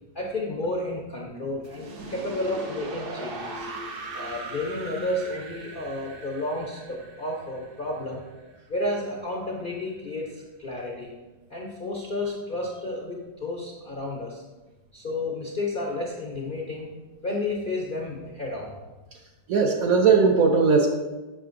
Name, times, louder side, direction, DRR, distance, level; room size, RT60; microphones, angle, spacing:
voice 1, 0.1-3.7 4.1-8.2 8.7-11.1 11.5-14.4 14.9-16.9 17.2-18.7, left 2 dB, 55° left, -2 dB, 0.5 m, -31 dB
sound 1, 1.6-8.6, right 2 dB, 85° right, 0.5 m, -39 dB
voice 2, 19.5-20.9, right 5 dB, 70° right, 1 dB, 0.9 m, -18 dB
7.4 x 5.7 x 2.5 m, 1.2 s
omnidirectional pair, 1.9 m